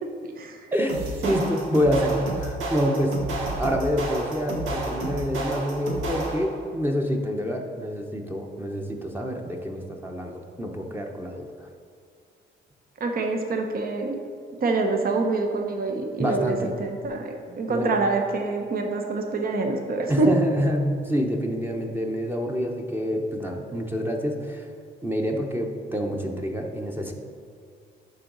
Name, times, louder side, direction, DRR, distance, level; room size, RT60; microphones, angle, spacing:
voice 1, 0.0-0.7 1.2-1.3 13.0-14.2 14.6-20.3, right 3 dB, 50° right, 3 dB, 0.9 m, -26 dB
voice 2, 0.7-3.2 3.6-11.7 16.2-16.7 17.5-18.0 20.1-24.7 25.0-27.1, equal, 10° right, 1 dB, 0.8 m, -27 dB
sound 1, 0.9-6.6, right 2 dB, 85° right, 1.2 m, -31 dB
11.0 x 3.9 x 4.0 m, 2.3 s
cardioid pair, 90°, 20 cm